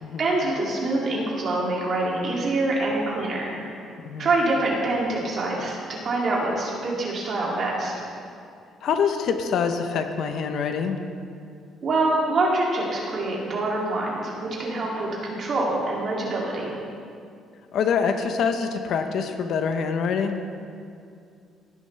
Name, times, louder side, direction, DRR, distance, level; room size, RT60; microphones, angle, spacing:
voice 1, 0.2-3.5 4.2-7.9 11.8-16.8, right 2 dB, 40° right, -4 dB, 2.5 m, -25 dB
voice 2, 8.8-11.0 17.7-20.4, left 6 dB, 55° left, 7 dB, 0.8 m, -25 dB
17.5 x 10.0 x 3.3 m, 2.4 s
cardioid pair, 165°, 0 cm